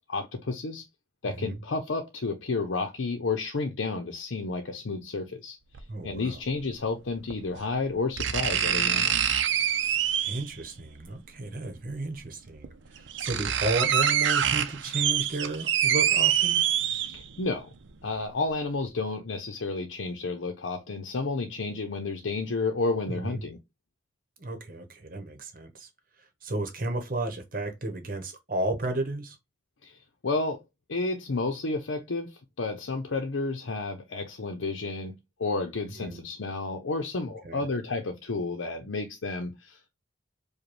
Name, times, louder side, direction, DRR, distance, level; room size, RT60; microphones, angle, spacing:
voice 1, 0.1-0.9 1.2-5.6 6.0-9.3 17.1-17.7 18.0-23.6 29.8-30.0 30.2-30.6 30.9-35.1 35.4-39.9, left 3 dB, 85° left, 0.7 m, -31 dB
voice 2, 1.3-1.6 5.9-6.4 10.2-16.6 23.1-23.4 24.4-25.9 26.2-29.4 36.0-36.2 37.4-37.6, right 2 dB, 45° right, 0.9 m, -33 dB
sound 1, 5.7-5.8 7.3-7.4 8.2-10.5 11.9-12.0 12.6-12.7 13.0-17.4 17.8-17.9, right 9 dB, 75° right, 0.5 m, -25 dB
5.0 x 2.2 x 3.0 m
head